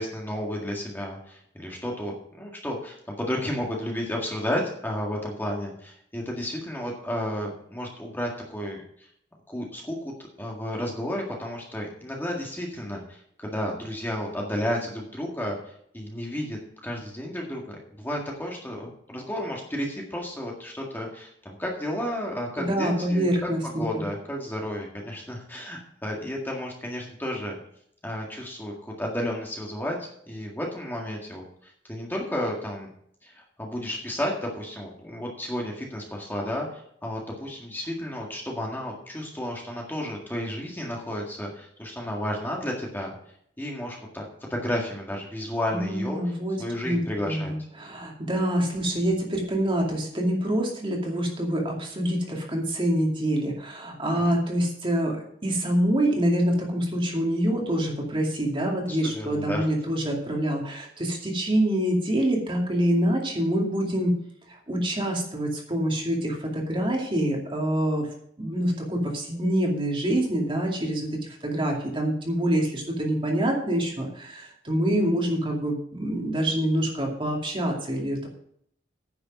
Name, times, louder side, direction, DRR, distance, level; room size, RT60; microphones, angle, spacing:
voice 1, 0.0-9.1 9.5-23.3 23.8-27.6 28.0-32.9 33.2-43.1 43.6-44.2 44.5-46.3 46.6-47.5 54.2-54.3 58.9-59.7, left 1 dB, 10° left, -1 dB, 1.9 m, -32 dB
voice 2, 22.6-24.0 45.7-64.2 64.5-68.1 68.4-78.3, right 1 dB, 30° right, 0 dB, 2.4 m, -26 dB
10.0 x 6.7 x 6.0 m, 0.67 s
head